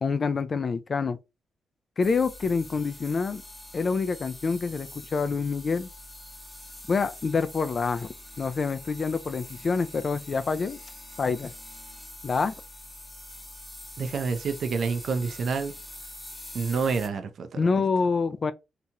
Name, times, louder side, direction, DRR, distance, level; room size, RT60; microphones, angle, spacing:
voice 1, 0.0-1.2 2.0-3.4 3.7-5.9 6.9-8.1 8.4-10.8 11.2-11.5 12.2-12.5 17.6-18.5, left 4 dB, 45° left, 0.3 m, -26 dB
sound 1, 2.0-17.1, left 1 dB, 10° left, 0.9 m, -44 dB
voice 2, 14.0-15.7 16.5-17.7, right 5 dB, 65° right, 0.5 m, -28 dB
2.9 x 2.8 x 2.2 m
cardioid pair, 75°, 0 cm